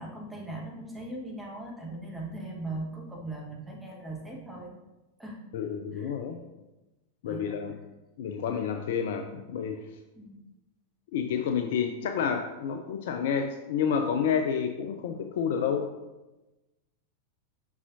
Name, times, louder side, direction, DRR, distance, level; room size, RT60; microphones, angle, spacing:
voice 1, 0.0-4.7 5.2-5.4 5.9-6.1 7.3-7.5 10.1-10.4, right 2 dB, 5° right, -3 dB, 1.4 m, -39 dB
voice 2, 5.5-6.4 7.2-7.8 8.2-9.8 11.1-15.9, left 7 dB, 55° left, 6 dB, 0.4 m, -29 dB
7.0 x 5.4 x 2.7 m, 1.1 s
figure-of-eight pair, 90°, 0 cm